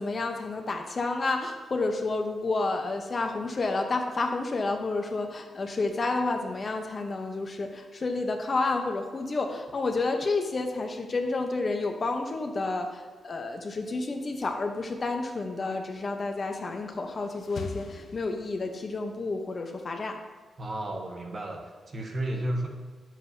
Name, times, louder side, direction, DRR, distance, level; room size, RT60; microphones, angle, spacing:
voice 1, 0.0-20.2, left 3 dB, 35° left, 4 dB, 0.9 m, -30 dB
sound 1, 16.7-19.0, left 5 dB, 60° left, 0.6 m, -43 dB
voice 2, 20.6-22.7, right 1 dB, 35° right, 1 dB, 1.3 m, -33 dB
11.0 x 7.5 x 2.7 m, 1.5 s
wide cardioid pair, 140°, 0 cm